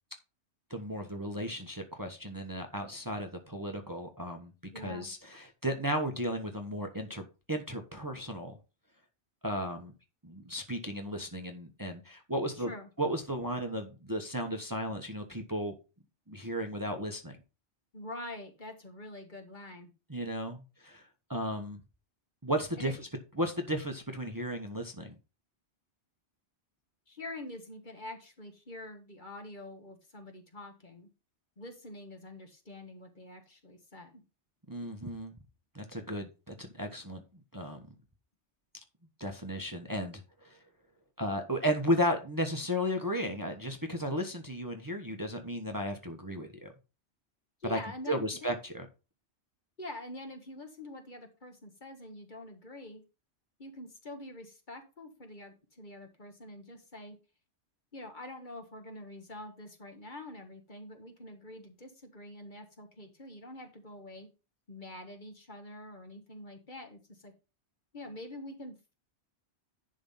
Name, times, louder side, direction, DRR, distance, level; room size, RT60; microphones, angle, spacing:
voice 1, 0.7-7.2 7.5-8.5 9.4-9.9 10.2-12.7 13.0-15.7 16.3-17.4 20.1-21.0 21.3-21.8 22.4-23.1 23.4-25.1 34.7-35.3 35.7-37.2 37.5-37.8 39.2-40.6 41.2-46.7 47.6-47.8 48.1-48.9, equal, 20° right, 4 dB, 1.1 m, -34 dB
voice 2, 4.7-5.1 12.6-12.9 17.9-19.9 22.8-22.9 27.1-31.1 31.6-34.2 47.6-48.5 49.8-53.0 53.6-57.2 57.9-64.3 64.7-67.3 67.9-68.9, left 1 dB, 45° left, 5 dB, 1.6 m, -46 dB
10.5 x 3.8 x 5.5 m, 0.30 s
omnidirectional pair, 1.2 m